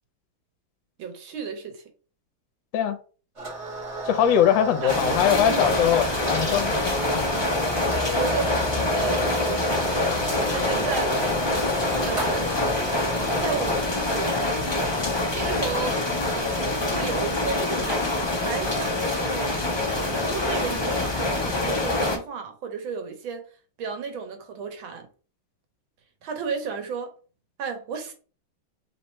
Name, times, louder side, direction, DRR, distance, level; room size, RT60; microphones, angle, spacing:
voice 1, 1.0-1.8 4.8-5.8 8.1-8.6 8.9-10.1 10.5-11.2 12.0-12.6 13.4-16.0 16.3-18.0 18.4-19.5 19.9-23.5 23.8-25.1 26.2-27.1 27.6-28.1, right 5 dB, 85° right, 1.7 m, -33 dB
sound 1, 3.4-13.8, right 1 dB, 20° right, 0.9 m, -31 dB
voice 2, 4.0-7.3, left 9 dB, 75° left, 1.4 m, -22 dB
sound 2, 4.9-22.2, left 2 dB, 40° left, 0.3 m, -26 dB
3.7 x 3.1 x 4.4 m
omnidirectional pair, 2.1 m